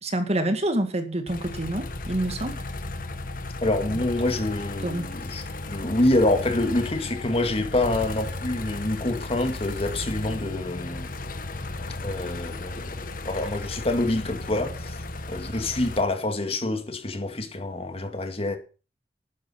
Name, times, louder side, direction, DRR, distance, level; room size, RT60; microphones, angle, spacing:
voice 1, 0.0-2.6 4.8-5.1, right 1 dB, 35° right, 2.1 m, -27 dB
sound 1, 1.3-16.0, left 2 dB, 50° left, 1.5 m, -35 dB
voice 2, 3.6-11.1 12.0-13.0 13.2-15.0 15.3-18.6, left 2 dB, 35° left, 2.3 m, -26 dB
13.0 x 10.0 x 5.9 m
head